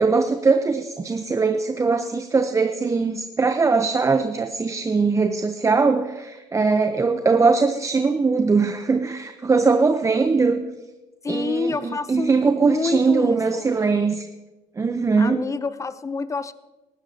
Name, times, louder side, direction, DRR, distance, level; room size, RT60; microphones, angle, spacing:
voice 1, 0.0-10.6 11.3-14.3 14.8-15.4, right 4 dB, 25° right, 7 dB, 0.9 m, -21 dB
voice 2, 11.2-12.3 12.6-13.7 15.2-16.5, left 4 dB, 25° left, 14 dB, 0.8 m, -27 dB
18.5 x 13.0 x 2.9 m, 1.1 s
hypercardioid pair, 70°, 13 cm